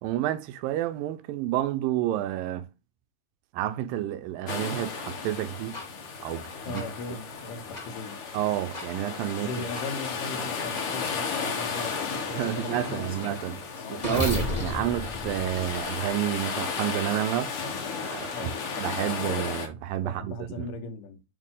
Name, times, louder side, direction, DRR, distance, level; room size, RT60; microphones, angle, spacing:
voice 1, 0.0-2.7 3.5-5.8 6.2-6.8 8.3-9.5 12.3-13.6 13.9-17.5 18.1-18.5 18.8-20.7, right 13 dB, 85° right, 2.4 m, -30 dB
sound 1, 4.5-19.7, left 5 dB, 60° left, 1.6 m, -34 dB
sound 2, 5.7-5.8 6.7-6.8 7.7-7.8 8.7-8.9 9.7-9.8 10.7-10.8 11.7-11.9 12.4-16.3, left 2 dB, 35° left, 0.6 m, -34 dB
voice 2, 6.6-8.2 9.4-14.8 18.3-18.6 20.0-21.3, left 3 dB, 75° left, 2.4 m, -39 dB
8.7 x 3.4 x 3.7 m
omnidirectional pair, 4.0 m